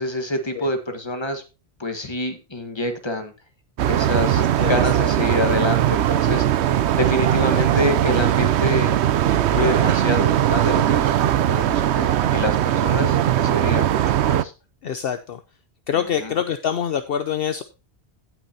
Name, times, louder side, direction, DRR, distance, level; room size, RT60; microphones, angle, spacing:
voice 1, 0.0-1.4 1.8-3.3 3.8-6.4 7.0-9.0 9.3-14.5 16.0-16.3, left 1 dB, 25° left, 7 dB, 1.5 m, -27 dB
sound 1, 3.8-14.4, right 11 dB, 85° right, 0.9 m, -19 dB
voice 2, 4.4-4.8 9.5-9.8 14.8-15.4 15.9-17.6, left 8 dB, 65° left, 10 dB, 0.9 m, -26 dB
16.5 x 6.1 x 2.8 m, 0.29 s
omnidirectional pair, 1.1 m